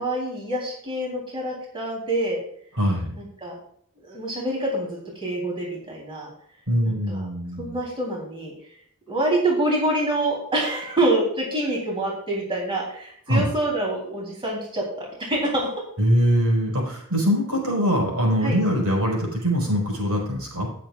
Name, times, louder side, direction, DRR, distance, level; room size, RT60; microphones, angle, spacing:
voice 1, 0.0-2.4 3.2-3.5 4.0-6.3 6.9-7.2 7.6-8.5 9.1-15.7 18.4-18.6, right 1 dB, 25° right, -2 dB, 3.6 m, -26 dB
voice 2, 2.7-3.2 6.7-7.8 13.3-13.5 16.0-20.7, equal, 80° right, -1 dB, 5.0 m, -22 dB
18.5 x 7.5 x 2.5 m, 0.62 s
head